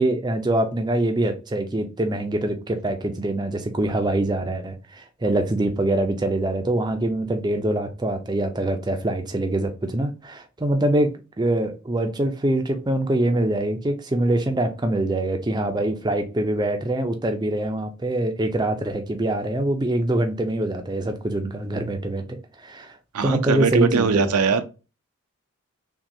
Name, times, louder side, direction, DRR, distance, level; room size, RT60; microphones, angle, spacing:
voice 1, 0.0-23.0 23.2-24.3, right 1 dB, 20° right, 0.5 m, -24 dB
voice 2, 23.1-24.6, right 5 dB, 90° right, 0.6 m, -21 dB
5.8 x 2.3 x 2.7 m
head